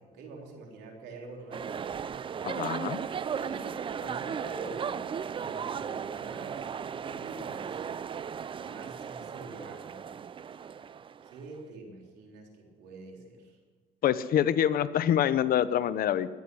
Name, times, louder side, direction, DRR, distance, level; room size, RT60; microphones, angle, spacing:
voice 1, 0.0-1.9 3.2-7.8 8.6-10.1 11.2-13.6, right 3 dB, 85° right, 0 dB, 3.9 m, -46 dB
sound 1, 1.5-11.4, right 7 dB, 30° right, 0.4 m, -36 dB
voice 2, 2.4-3.0 14.0-16.3, left 10 dB, 60° left, 14 dB, 0.8 m, -26 dB
21.5 x 9.9 x 6.3 m, 1.5 s
cardioid pair, 110°, 17 cm